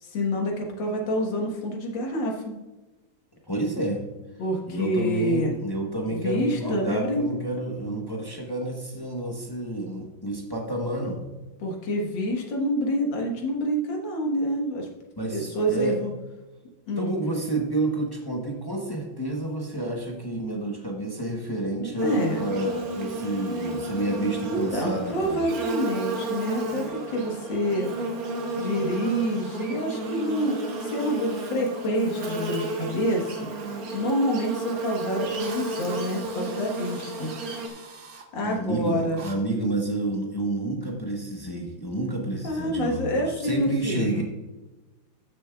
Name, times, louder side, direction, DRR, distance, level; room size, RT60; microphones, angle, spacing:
voice 1, 0.0-2.6 4.4-5.6 6.1-7.2 11.6-14.9 15.3-16.1 16.9-17.1 21.8-22.4 24.5-27.9 28.6-30.6 30.8-33.5 33.9-37.3 38.3-39.2 42.4-44.2, equal, 65° left, 1 dB, 2.1 m, -27 dB
voice 2, 3.5-4.0 4.7-11.2 15.2-16.0 17.0-25.4 38.4-44.2, right 1 dB, 20° left, 0 dB, 0.6 m, -29 dB
Buzz, 22.0-37.7, right 2 dB, 55° right, 1.2 m, -32 dB
Drill, 34.7-34.8 35.3-38.3 39.1-39.4, right 4 dB, 80° right, 0.5 m, -44 dB
13.5 x 6.9 x 2.4 m, 1.1 s
omnidirectional pair, 2.3 m